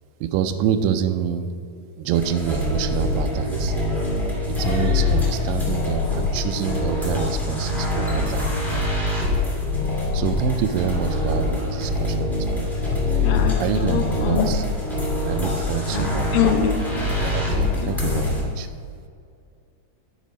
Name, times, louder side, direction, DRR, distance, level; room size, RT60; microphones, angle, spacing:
voice 1, 0.2-1.5 2.0-3.8 4.6-8.5 10.1-12.7 13.6-14.6 15.3-16.3 17.2-18.7, right 8 dB, 85° right, 8 dB, 2.0 m, -26 dB
sound 1, 2.1-18.4, left 2 dB, ahead, 0.7 m, -24 dB
voice 2, 13.2-14.5 15.9-16.8 17.5-17.9, left 7 dB, 75° left, 5 dB, 2.2 m, -25 dB
11.5 x 5.1 x 5.2 m, 2.3 s
omnidirectional pair, 4.4 m